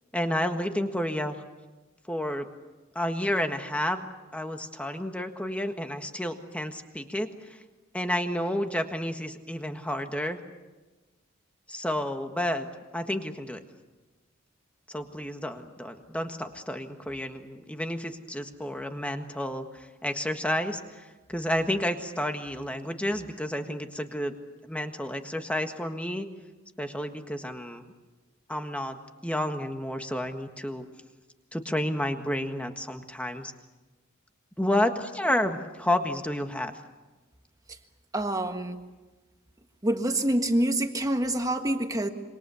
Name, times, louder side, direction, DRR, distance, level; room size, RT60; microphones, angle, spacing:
voice 1, 0.1-1.4 2.1-2.5 2.9-4.0 4.3-7.6 7.9-10.4 11.7-12.7 12.9-13.6 14.9-24.3 24.6-26.3 26.8-27.9 28.5-29.0 29.2-30.8 31.5-33.5 34.6-36.7, left 1 dB, 5° left, 6 dB, 1.6 m, -30 dB
voice 2, 38.1-38.8 39.8-42.1, right 1 dB, 15° right, 6 dB, 1.6 m, -26 dB
27.0 x 24.0 x 7.1 m, 1.2 s
head